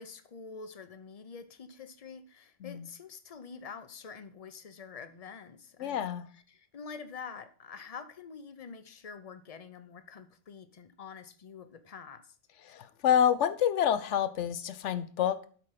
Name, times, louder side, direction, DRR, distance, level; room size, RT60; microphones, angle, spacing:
voice 1, 0.0-12.4, left 5 dB, 35° left, 11 dB, 0.7 m, -47 dB
voice 2, 5.8-6.3 12.7-15.4, left 9 dB, 75° left, 11 dB, 0.9 m, -28 dB
8.3 x 5.0 x 5.7 m, 0.43 s
omnidirectional pair, 1.3 m